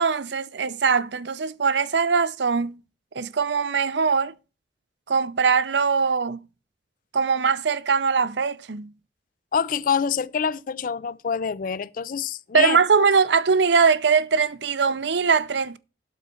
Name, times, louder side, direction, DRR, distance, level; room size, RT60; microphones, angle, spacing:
voice 1, 0.0-2.8 3.1-4.3 5.1-6.4 7.1-8.9 12.5-15.8, right 5 dB, 75° right, 0.6 m, -21 dB
voice 2, 9.5-12.8, left 6 dB, 50° left, 0.4 m, -26 dB
12.0 x 4.1 x 5.6 m
head